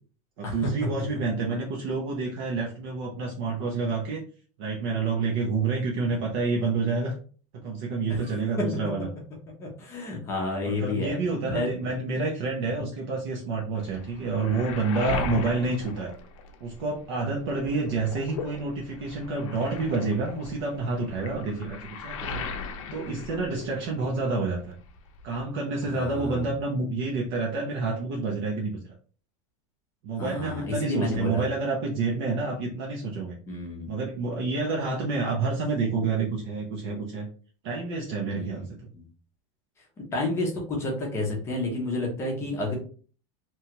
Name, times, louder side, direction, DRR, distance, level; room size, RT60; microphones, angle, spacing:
voice 1, 0.4-4.2 4.6-7.1 7.5-9.1 10.6-16.1 16.6-22.5 22.9-24.8 25.2-28.8 30.0-33.4 33.9-37.3 37.6-38.8 42.4-42.6, right 4 dB, 50° right, -1 dB, 0.6 m, -28 dB
voice 2, 9.6-11.2 11.4-11.7 12.8-12.9 15.1-15.2 25.9-26.5 30.2-31.4 33.5-33.9 38.3-38.6 38.9-39.0 40.0-42.7, left 2 dB, 15° left, -2 dB, 0.6 m, -30 dB
Waves surf, 13.8-17.0 17.3-24.2 24.5-25.4, left 4 dB, 80° left, 0.6 m, -37 dB
2.8 x 2.3 x 2.9 m, 0.42 s
supercardioid pair, 175°, 17 cm